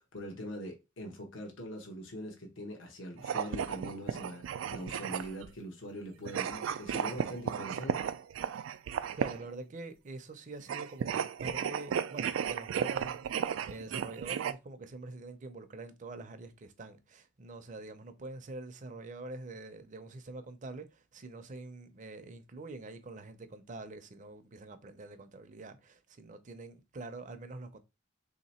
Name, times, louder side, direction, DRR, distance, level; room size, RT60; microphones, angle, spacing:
voice 1, 0.0-8.1, equal, 80° left, 1.0 m, -43 dB
sound 1, 3.2-5.5 6.2-9.5 10.6-14.5, right 8 dB, 90° right, 0.3 m, -34 dB
voice 2, 9.2-27.8, right 2 dB, 40° right, 0.5 m, -45 dB
3.3 x 2.9 x 4.2 m
head